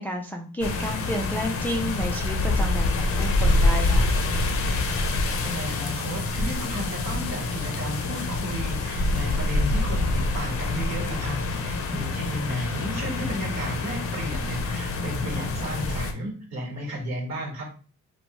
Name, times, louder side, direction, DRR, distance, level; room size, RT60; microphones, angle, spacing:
voice 1, 0.0-4.0, equal, 5° left, 1 dB, 0.3 m, -31 dB
sound 1, 0.6-16.1, left 2 dB, 50° left, 0.6 m, -26 dB
voice 2, 5.4-17.6, equal, 60° right, 0 dB, 1.3 m, -33 dB
3.0 x 2.2 x 2.8 m, 0.38 s
cardioid pair, 90°, 30 cm